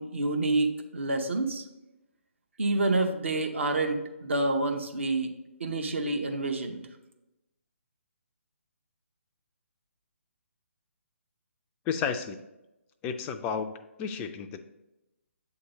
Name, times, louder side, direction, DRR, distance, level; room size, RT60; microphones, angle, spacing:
voice 1, 0.0-1.6 2.6-5.3 5.6-6.8, right 2 dB, 60° right, 4 dB, 0.9 m, -28 dB
voice 2, 11.9-12.4 13.0-13.7 14.0-14.6, left 6 dB, 15° left, 8 dB, 0.3 m, -32 dB
8.0 x 2.9 x 5.3 m, 0.95 s
figure-of-eight pair, 140°, 7 cm